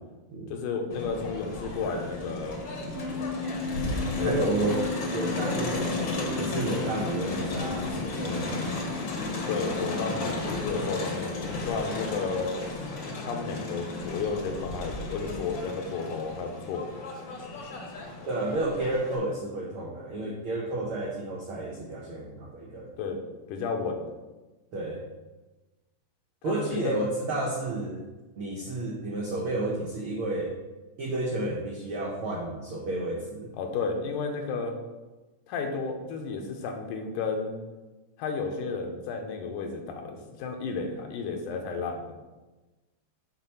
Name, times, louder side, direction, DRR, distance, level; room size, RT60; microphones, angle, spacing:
voice 1, 0.5-2.6 4.2-4.8 9.5-12.5 13.2-16.8 23.0-23.2 23.5-24.0 26.4-26.9 33.6-34.7 35.5-37.6 38.2-42.2, left 4 dB, 80° left, 3 dB, 2.4 m, -32 dB
Crowd, 0.9-19.2, left 2 dB, 55° left, 1.4 m, -34 dB
sound 1, 2.9-10.4, left 4 dB, 60° right, 1.0 m, -36 dB
voice 2, 4.2-4.9 5.1-9.0 18.3-22.9 24.7-25.0 26.4-28.1 28.3-30.5 31.0-33.5, right 2 dB, 80° right, -1 dB, 1.2 m, -31 dB
7.9 x 4.2 x 5.6 m, 1.2 s
omnidirectional pair, 3.7 m